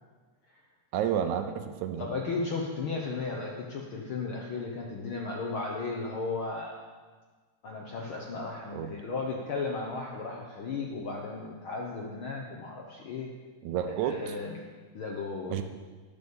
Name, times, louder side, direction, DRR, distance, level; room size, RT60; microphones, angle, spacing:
voice 1, 0.9-2.1 8.7-8.9 13.6-14.3 15.5-15.6, right 9 dB, 75° right, 7 dB, 2.0 m, -30 dB
voice 2, 2.0-6.8 7.6-13.3 13.8-14.6 14.9-15.6, left 3 dB, 65° left, -1 dB, 1.3 m, -35 dB
10.5 x 6.8 x 7.1 m, 1.4 s
omnidirectional pair, 3.6 m